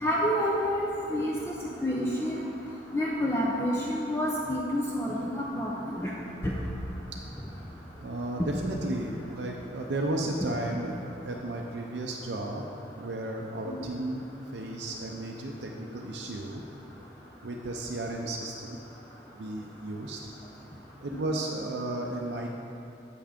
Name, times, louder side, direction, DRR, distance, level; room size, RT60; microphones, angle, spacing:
voice 1, 0.0-1.5 1.8-2.4 2.9-6.1 13.7-13.8 21.1-21.2, equal, 15° left, -4 dB, 0.6 m, -28 dB
voice 2, 8.0-11.0 11.2-12.7 13.0-14.3 14.5-16.6 17.4-18.8 19.3-20.2 21.0-22.6, right 1 dB, 75° right, 0 dB, 0.5 m, -34 dB
7.7 x 5.8 x 5.0 m, 2.8 s
head